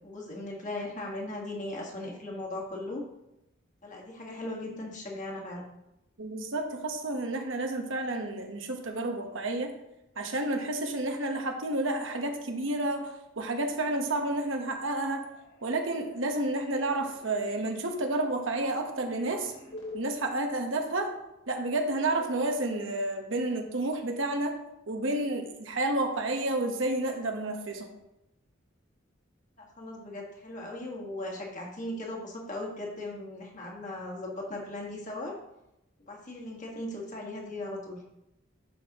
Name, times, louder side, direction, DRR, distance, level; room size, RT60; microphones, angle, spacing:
voice 1, 0.0-3.0 3.8-5.6 29.6-35.4 36.1-38.0, left 1 dB, 40° left, -2 dB, 1.7 m, -38 dB
voice 2, 6.2-9.7 10.2-15.2 15.6-19.5 19.9-21.1 21.5-24.6 24.9-27.9, right 2 dB, 75° right, 4 dB, 1.1 m, -30 dB
sound 1, 14.9-20.0, left 2 dB, 75° left, 3.1 m, -50 dB
11.0 x 5.3 x 3.0 m, 0.88 s
head